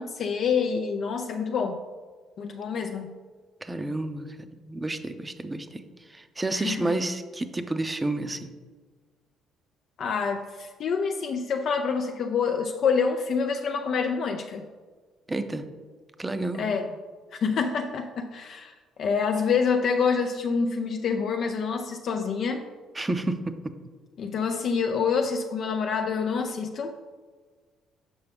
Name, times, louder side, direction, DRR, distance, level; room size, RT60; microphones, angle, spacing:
voice 1, 0.0-1.8 2.4-3.1 6.5-6.9 10.0-14.7 16.6-16.9 17.3-22.6 24.2-27.0, left 5 dB, 60° left, 5 dB, 0.4 m, -27 dB
voice 2, 3.6-4.3 4.7-5.8 6.1-8.5 15.3-15.7 16.2-16.7 23.0-23.5, right 2 dB, 15° right, 9 dB, 0.5 m, -30 dB
7.0 x 5.6 x 3.5 m, 1.5 s
supercardioid pair, 80°, 0 cm